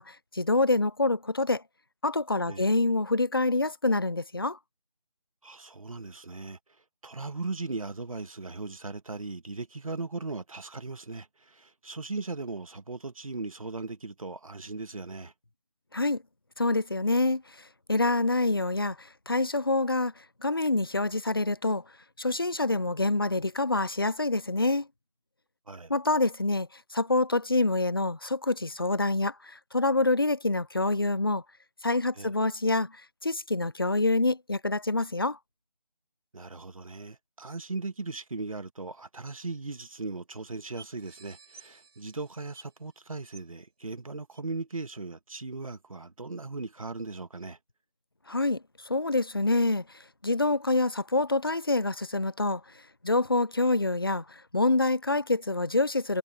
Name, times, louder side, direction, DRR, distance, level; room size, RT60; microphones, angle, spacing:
voice 1, 0.0-1.6 2.0-4.6 15.9-16.2 16.6-17.4 17.9-20.1 20.4-21.8 22.2-24.9 25.9-31.4 31.8-32.9 33.2-35.4 48.3-49.8 50.2-52.6 53.0-56.2, left 2 dB, 35° left, 0.4 m, -26 dB
voice 2, 5.4-6.6 7.0-15.3 25.7-25.9 32.2-32.3 36.3-47.6, right 3 dB, 60° right, 1.9 m, -38 dB
sound 1, 39.5-39.6 39.8-39.9 40.3-40.4 40.8-43.0 43.3-43.6 44.3-44.4, right 4 dB, 40° right, 4.1 m, -53 dB
figure-of-eight pair, 170°, 20 cm